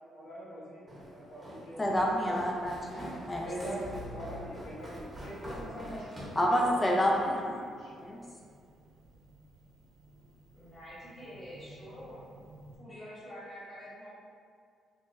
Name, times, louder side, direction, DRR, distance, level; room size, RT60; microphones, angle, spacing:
voice 1, 0.1-2.4 2.9-3.1 3.4-6.7 7.8-8.0, equal, 70° left, -7 dB, 1.1 m, -43 dB
Walk footsteps, 0.9-7.3, equal, 15° right, 1.1 m, -45 dB
voice 2, 1.8-3.4 6.4-7.6 8.0-8.2, equal, 20° left, -1 dB, 0.5 m, -28 dB
sound 1, 2.1-12.8, equal, 80° right, 0.3 m, -54 dB
voice 3, 10.5-12.2 12.8-14.1, equal, 45° left, -12 dB, 1.4 m, -46 dB
3.3 x 2.2 x 3.1 m, 2.2 s
cardioid pair, 90°, 0 cm